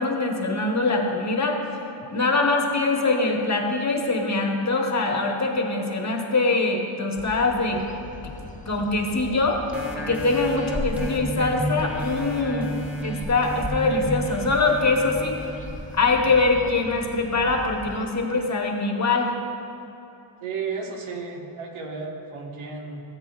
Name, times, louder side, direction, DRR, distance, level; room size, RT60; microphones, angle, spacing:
voice 1, 0.0-1.6 2.1-7.8 8.6-9.6 10.0-12.7 13.0-15.5 15.9-19.3, left 3 dB, 35° left, 1 dB, 1.1 m, -23 dB
sound 1, 7.1-18.1, left 3 dB, 15° left, 0.6 m, -40 dB
sound 2, 9.7-16.9 17.4-17.5, equal, 5° right, 1.0 m, -32 dB
voice 2, 20.4-23.0, right 5 dB, 90° right, 0 dB, 1.4 m, -33 dB
17.0 x 8.0 x 2.4 m, 2.9 s
cardioid pair, 110°, 48 cm